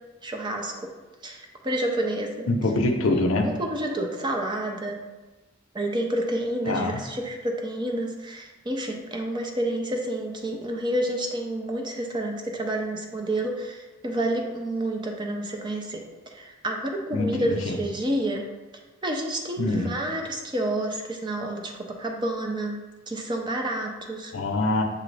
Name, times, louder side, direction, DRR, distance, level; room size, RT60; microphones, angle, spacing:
voice 1, 0.2-0.9 1.2-2.5 3.4-5.0 5.7-16.0 16.3-18.4 19.0-22.8 23.1-24.3, right 1 dB, 20° right, 2 dB, 0.5 m, -29 dB
voice 2, 2.5-3.5 6.7-7.0 17.1-17.8 19.6-19.9 24.3-24.8, left 2 dB, 85° left, 4 dB, 0.6 m, -24 dB
6.7 x 2.5 x 3.2 m, 1.2 s
head